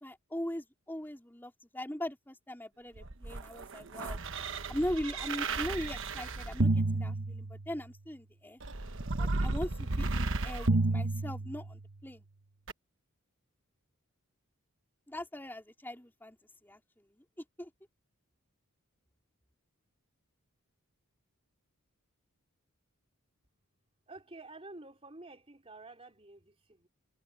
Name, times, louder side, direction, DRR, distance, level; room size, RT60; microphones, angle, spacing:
voice 1, 0.0-4.2 4.7-8.6 9.2-12.2 15.1-16.4 16.6-16.8 17.6-17.7, left 1 dB, 10° left, 3.4 m, -40 dB
sound 1, 3.0-7.9 8.6-11.9 12.7-12.8, right 2 dB, 60° right, 1.2 m, -32 dB
voice 2, 24.1-26.9, right 2 dB, 25° right, 3.5 m, -50 dB
head